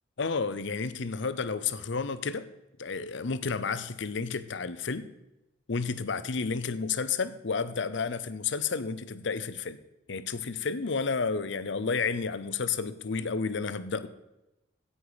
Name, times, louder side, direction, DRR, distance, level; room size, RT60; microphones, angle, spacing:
voice 1, 0.2-2.5 2.8-5.1 5.7-9.8 10.1-14.1, left 5 dB, 65° left, 0.7 m, -31 dB
16.0 x 5.6 x 5.0 m
head